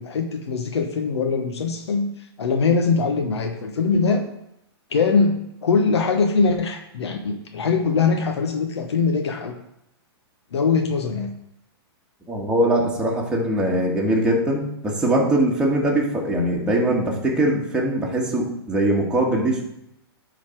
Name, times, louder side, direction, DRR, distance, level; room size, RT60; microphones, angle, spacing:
voice 1, 0.0-4.2 4.9-9.5 10.5-11.3, left 4 dB, 85° left, 4 dB, 1.0 m, -22 dB
voice 2, 12.3-19.6, right 1 dB, 5° right, -3 dB, 1.7 m, -21 dB
11.5 x 4.1 x 4.6 m, 0.79 s
hypercardioid pair, 135°, 14 cm